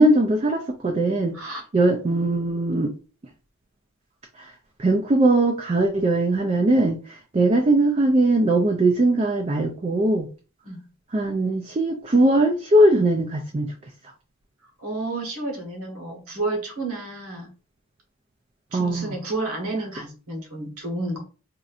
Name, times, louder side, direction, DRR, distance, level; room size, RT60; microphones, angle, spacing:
voice 1, 0.0-1.4 1.7-2.9 4.4-4.5 4.8-10.3 11.1-13.7 18.7-19.2, right 1 dB, 30° right, 2 dB, 0.3 m, -20 dB
voice 2, 14.8-17.5 18.7-21.2, right 2 dB, 80° right, 1 dB, 1.2 m, -31 dB
4.1 x 2.5 x 2.4 m, 0.35 s
head